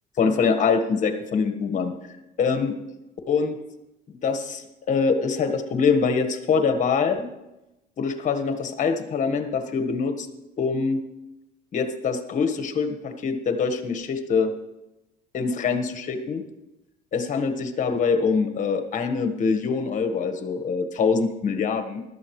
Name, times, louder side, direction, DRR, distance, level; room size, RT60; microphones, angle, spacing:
voice 1, 0.2-1.9 2.4-2.7 3.3-3.6 4.2-7.3 8.0-10.3 10.6-11.0 11.7-14.5 15.3-16.4 17.1-22.0, left 5 dB, 50° left, 7 dB, 1.5 m, -24 dB
16.0 x 12.5 x 3.2 m, 0.97 s
cardioid pair, 110°, 17 cm